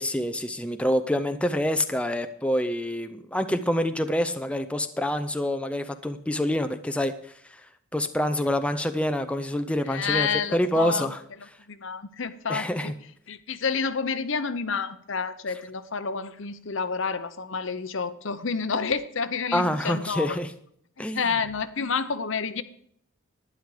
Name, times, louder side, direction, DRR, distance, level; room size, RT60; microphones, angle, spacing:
voice 1, 0.0-7.6 7.9-11.2 12.5-12.9 19.5-20.5 21.0-21.2, left 1 dB, 5° left, 8 dB, 0.5 m, -27 dB
voice 2, 9.9-11.1 11.7-12.9 13.3-20.4 21.0-22.6, left 5 dB, 60° left, 13 dB, 0.8 m, -29 dB
11.5 x 10.0 x 4.8 m, 0.68 s
head